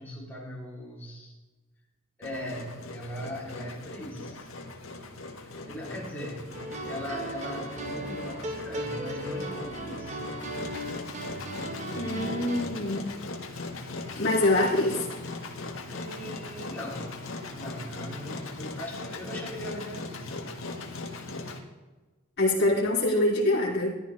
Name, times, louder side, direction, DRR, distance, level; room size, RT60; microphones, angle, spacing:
voice 1, 0.0-1.3 2.2-4.5 5.5-10.2 15.9-20.4, equal, 10° left, -4 dB, 3.3 m, -39 dB
Engine, 2.2-21.6, left 3 dB, 85° left, 1.5 m, -39 dB
sound 1, 6.5-12.6, right 1 dB, 35° right, 1.3 m, -36 dB
voice 2, 11.9-13.1 14.2-15.1 22.4-23.9, left 1 dB, 55° left, -7 dB, 3.2 m, -25 dB
14.5 x 12.0 x 3.3 m, 1.2 s
head